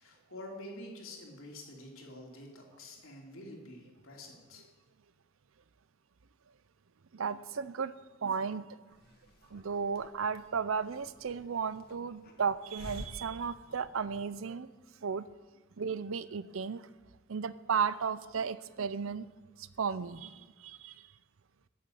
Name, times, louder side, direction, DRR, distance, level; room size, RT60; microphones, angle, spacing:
voice 1, 0.0-4.6, left 1 dB, 85° left, -1 dB, 3.0 m, -48 dB
voice 2, 7.1-7.9 8.2-8.7 9.5-14.7 15.0-15.3 15.8-16.9 17.3-19.3 19.6-21.1, right 6 dB, 75° right, 16 dB, 0.6 m, -34 dB
Hiss, 8.9-14.4, left 1 dB, 50° left, 1.7 m, -52 dB
11.5 x 6.9 x 9.2 m, 1.2 s
head